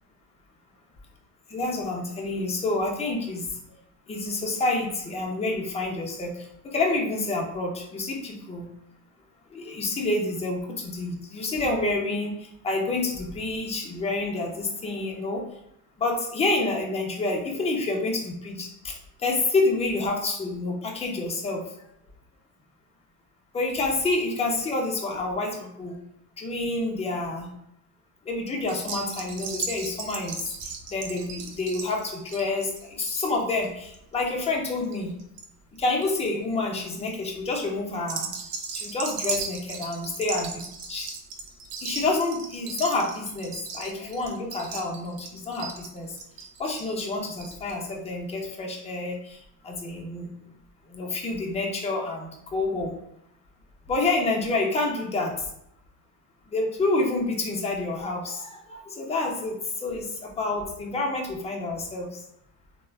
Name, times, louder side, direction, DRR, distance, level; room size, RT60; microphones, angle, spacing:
voice 1, 1.5-3.5 4.1-8.7 9.5-12.3 12.6-15.4 16.0-21.6 23.5-26.0 26.4-27.5 28.3-30.5 30.9-35.1 35.8-38.3 38.7-40.5 40.9-41.1 41.8-46.2 46.6-50.3 50.9-52.9 53.9-55.3 56.5-62.2, left 2 dB, 15° left, -1 dB, 0.5 m, -28 dB
sound 1, 28.7-35.5 35.8-36.3 36.8-37.1 38.0-47.8 48.1-48.2 48.4-48.5, right 5 dB, 65° right, 0.6 m, -37 dB
3.1 x 2.1 x 2.3 m, 0.78 s
supercardioid pair, 90°, 46 cm